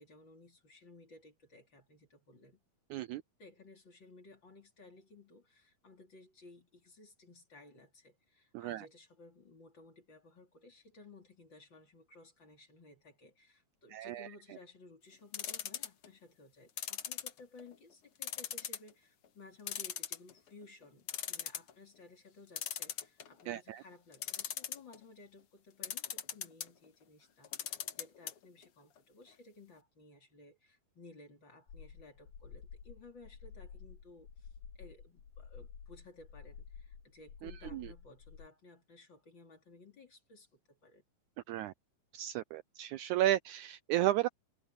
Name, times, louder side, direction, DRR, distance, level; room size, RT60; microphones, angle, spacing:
voice 1, 0.0-2.6 3.4-41.0, left 3 dB, 35° left, 3.7 m, -57 dB
voice 2, 2.9-3.2 8.5-8.8 13.9-14.3 23.5-23.8 37.7-37.9 41.5-41.7 42.1-44.3, right 14 dB, 85° right, 1.7 m, -33 dB
sound 1, 15.3-16.1 16.8-17.7 18.2-18.9 19.2-19.3 19.7-20.5 20.8-20.9 21.1-21.7 22.6-23.4 24.1-25.0 25.8-26.7 27.4-28.3 28.6-28.7 29.0-29.1, left 9 dB, 60° left, 1.6 m, -39 dB
sound 2, 31.7-38.5, left 6 dB, 90° left, 4.4 m, -51 dB
omnidirectional pair, 4.0 m